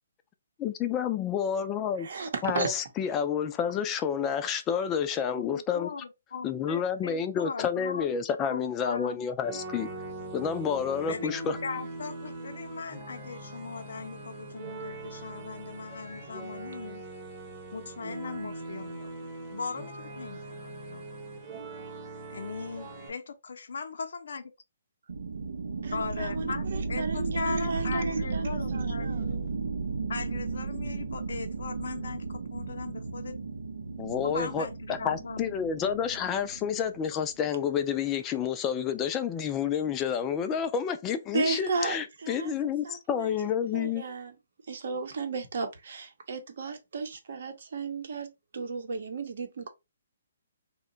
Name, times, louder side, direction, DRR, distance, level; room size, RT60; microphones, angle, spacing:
voice 1, 0.6-2.1 2.4-5.9 6.4-9.9 10.3-11.6 34.0-44.0, left 7 dB, 15° left, 0.3 m, -29 dB
voice 2, 2.0-2.8 25.8-29.4 41.3-43.4 43.7-44.3 44.7-49.7, right 4 dB, 60° right, 0.8 m, -34 dB
voice 3, 5.4-8.1 8.5-9.2 11.1-11.4 11.6-17.0 17.7-19.1 19.5-21.2 22.3-24.4 25.9-29.5 30.1-33.4 34.2-34.7 35.0-35.5, left 5 dB, 75° left, 0.6 m, -39 dB
sound 1, 9.4-23.1, right 2 dB, 25° right, 0.9 m, -41 dB
sound 2, 25.1-37.4, right 4 dB, 90° right, 0.5 m, -34 dB
2.8 x 2.2 x 3.7 m
hypercardioid pair, 160°, 0 cm